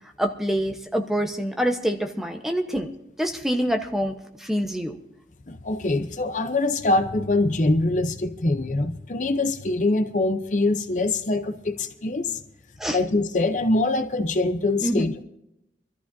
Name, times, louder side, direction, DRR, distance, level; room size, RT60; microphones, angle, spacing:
voice 1, 0.2-2.9 3.2-5.0 12.8-13.0 14.8-15.1, equal, ahead, 3 dB, 1.0 m, -26 dB
voice 2, 5.5-12.4 12.9-15.2, left 2 dB, 45° left, 8 dB, 0.7 m, -24 dB
24.5 x 14.0 x 2.7 m, 0.84 s
head